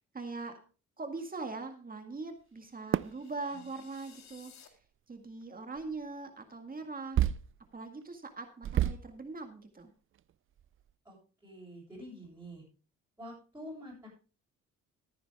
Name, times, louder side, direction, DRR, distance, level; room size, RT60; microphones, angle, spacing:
voice 1, 0.1-0.6 1.0-4.8 5.1-7.2 7.7-9.9, right 3 dB, 30° right, 6 dB, 1.9 m, -41 dB
sound 1, 2.7-4.7, left 8 dB, 65° left, 2.0 m, -58 dB
sound 2, 2.9-3.2 4.4-4.5 5.8-5.9 7.1-7.7 8.0-8.1 8.6-9.2 9.8-9.9 10.2-10.3 10.6-10.9, right 11 dB, 45° right, 0.4 m, -30 dB
voice 2, 11.4-12.6 13.2-14.1, equal, 10° right, -6 dB, 7.9 m, -47 dB
14.0 x 9.7 x 3.5 m, 0.36 s
cardioid pair, 90°, 30 cm